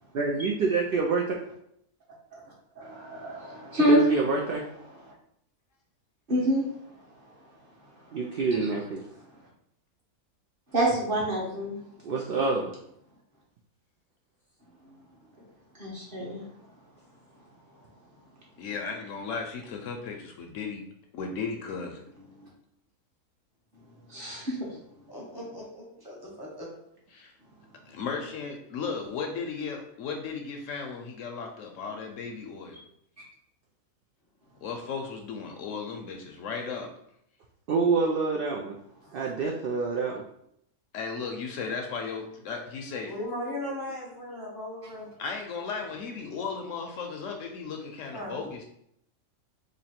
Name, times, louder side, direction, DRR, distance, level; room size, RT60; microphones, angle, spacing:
voice 1, 0.1-1.2 3.9-4.6 8.1-9.0 12.0-12.7 37.7-38.8 39.1-40.2, right 4 dB, 70° right, -1 dB, 0.5 m, -27 dB
voice 2, 2.4-4.0 5.0-5.1 6.3-6.6 8.5-8.7 10.7-11.8 15.8-16.4 22.4-22.5 24.1-24.6, right 1 dB, 40° right, -4 dB, 1.1 m, -27 dB
voice 3, 18.6-20.8 21.1-22.0 27.1-27.3 27.9-32.8 34.6-36.9 40.9-43.1 45.2-48.6, left 5 dB, 70° left, 3 dB, 0.8 m, -35 dB
voice 4, 25.1-26.7 43.1-45.1 48.1-48.4, left 1 dB, 20° left, -4 dB, 0.6 m, -37 dB
3.0 x 2.6 x 4.2 m, 0.73 s
omnidirectional pair, 1.5 m